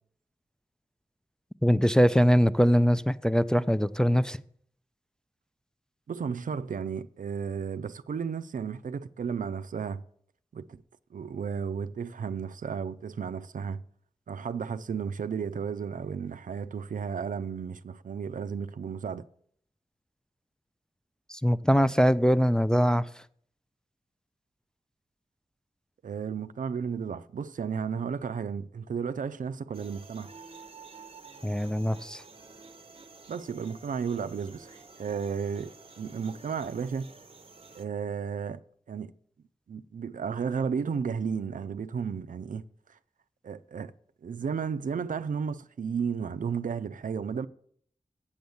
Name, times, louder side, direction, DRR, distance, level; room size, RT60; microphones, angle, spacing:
voice 1, 1.6-4.4 21.3-23.2 31.4-32.2, equal, 5° left, 0.3 m, -22 dB
voice 2, 6.1-10.0 10.5-10.8 11.1-13.8 14.3-19.2 26.0-30.3 33.3-35.7 36.0-37.1 37.7-38.6 38.9-39.1 39.7-43.0 43.4-43.9 44.2-47.5, right 6 dB, 80° right, 0.4 m, -33 dB
sound 1, 29.7-37.9, right 4 dB, 45° right, 0.7 m, -50 dB
7.8 x 7.2 x 7.0 m
wide cardioid pair, 60°, 13 cm